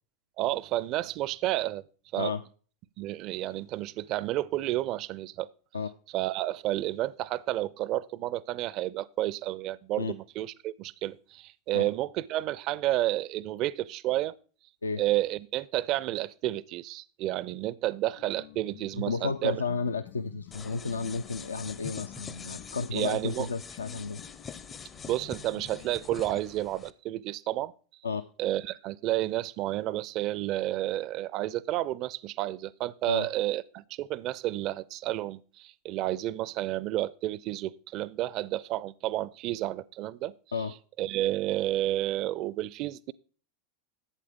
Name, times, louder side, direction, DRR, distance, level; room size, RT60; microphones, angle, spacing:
voice 1, 0.4-1.8 2.1-2.3 3.0-5.5 6.1-14.4 15.0-19.6 22.9-23.5 25.1-27.7 28.4-40.3 41.0-43.1, right 15 dB, 40° right, 0.4 m, -31 dB
sound 1, 18.2-26.3, left 12 dB, 55° left, 1.4 m, -51 dB
voice 2, 19.0-24.2 28.0-28.2 33.1-33.3 40.5-40.7, left 4 dB, 75° left, 0.3 m, -32 dB
sound 2, 20.5-26.9, left 6 dB, 25° left, 0.5 m, -45 dB
11.5 x 8.6 x 3.5 m
figure-of-eight pair, 85°, 0 cm